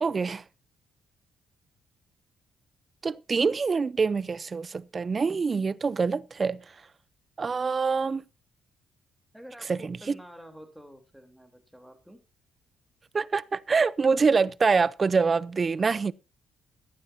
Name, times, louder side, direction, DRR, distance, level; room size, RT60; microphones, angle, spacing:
voice 1, 0.0-0.4 3.0-6.6 7.4-8.2 9.7-10.0 13.1-16.1, right 5 dB, 35° right, 0.5 m, -25 dB
voice 2, 9.3-12.2, equal, ahead, 3.3 m, -49 dB
14.5 x 11.5 x 2.7 m
cardioid pair, 90°, 0 cm